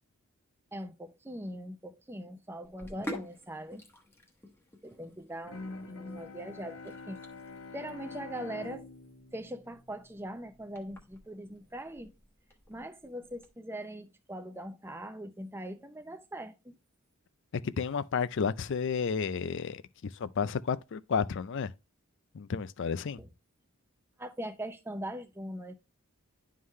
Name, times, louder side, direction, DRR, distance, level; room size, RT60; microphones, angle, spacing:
voice 1, 0.7-3.8 4.8-7.2 7.7-8.9 9.3-12.1 12.7-16.8 23.2-23.3 24.2-25.7, right 1 dB, 10° right, 0.6 m, -41 dB
Sink (filling or washing), 2.6-13.5, left 1 dB, 10° left, 1.0 m, -49 dB
Bowed string instrument, 5.5-10.5, left 3 dB, 80° left, 1.5 m, -46 dB
voice 2, 17.6-21.7 22.3-23.2, left 6 dB, 55° left, 0.4 m, -32 dB
11.0 x 3.8 x 3.1 m
head